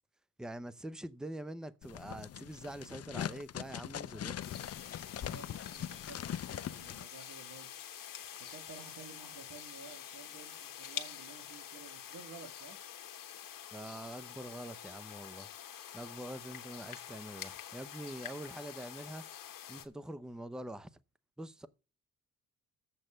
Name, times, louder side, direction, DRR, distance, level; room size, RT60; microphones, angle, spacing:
voice 1, 0.4-4.5 13.7-15.5 15.9-19.2 19.7-20.9 21.4-21.7, right 1 dB, ahead, 0.6 m, -44 dB
sound 1, 1.8-7.0, left 10 dB, 45° left, 0.5 m, -41 dB
sound 2, 4.4-19.8, left 9 dB, 65° left, 1.3 m, -47 dB
voice 2, 5.2-7.7 8.5-12.8, right 5 dB, 60° right, 2.6 m, -53 dB
7.6 x 6.5 x 6.7 m
cardioid pair, 85°, 35 cm